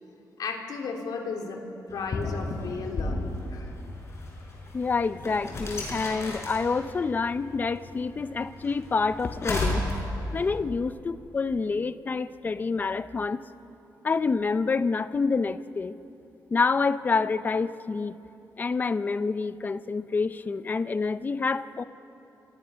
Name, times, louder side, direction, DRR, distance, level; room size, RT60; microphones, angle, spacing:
voice 1, 0.4-3.7, left 4 dB, 70° left, 2 dB, 3.0 m, -35 dB
sound 1, 1.9-10.6, left 2 dB, 40° left, 5.7 m, -34 dB
voice 2, 4.7-9.9 10.3-13.4 14.0-16.0 16.5-18.2 18.6-21.8, left 4 dB, 25° left, 13 dB, 0.6 m, -27 dB
27.0 x 25.5 x 6.4 m, 2.9 s
wide cardioid pair, 180°, 7 cm